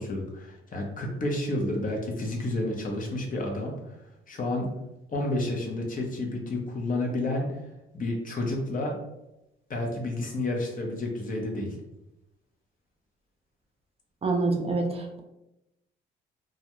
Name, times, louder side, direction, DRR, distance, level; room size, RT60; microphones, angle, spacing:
voice 1, 0.0-3.7 4.3-4.7 5.1-7.5 7.9-9.0 9.7-11.8, left 1 dB, 45° left, 1 dB, 0.7 m, -30 dB
voice 2, 14.2-15.2, right 3 dB, 30° right, 1 dB, 0.4 m, -26 dB
2.3 x 2.2 x 2.9 m, 0.90 s
cardioid pair, 90°, 20 cm